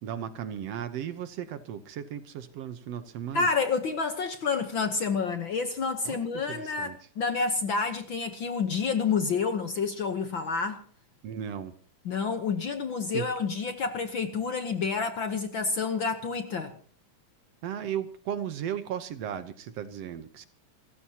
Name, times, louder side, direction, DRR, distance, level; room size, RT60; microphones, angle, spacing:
voice 1, 0.0-3.5 6.1-7.0 11.2-11.7 13.1-13.3 17.6-20.5, right 9 dB, 65° right, 1.9 m, -36 dB
voice 2, 3.3-10.8 12.0-16.7, left 5 dB, 55° left, 1.5 m, -29 dB
29.0 x 15.0 x 2.9 m
omnidirectional pair, 3.3 m